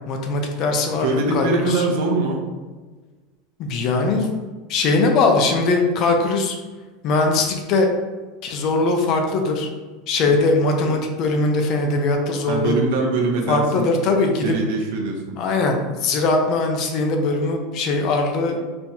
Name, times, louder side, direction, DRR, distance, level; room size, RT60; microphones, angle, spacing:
voice 1, 0.1-1.9 3.6-4.4 4.7-6.6 7.0-7.9 8.4-9.7 10.1-12.8 13.5-14.5 15.4-18.6, left 3 dB, 40° left, 3 dB, 0.6 m, -20 dB
voice 2, 0.9-2.4 5.5-5.6 10.2-10.4 10.8-10.9 11.2-11.3 11.8-13.9 14.4-15.4, right 3 dB, 65° right, 2 dB, 0.8 m, -23 dB
4.3 x 3.4 x 2.8 m, 1.3 s
supercardioid pair, 165°, 0 cm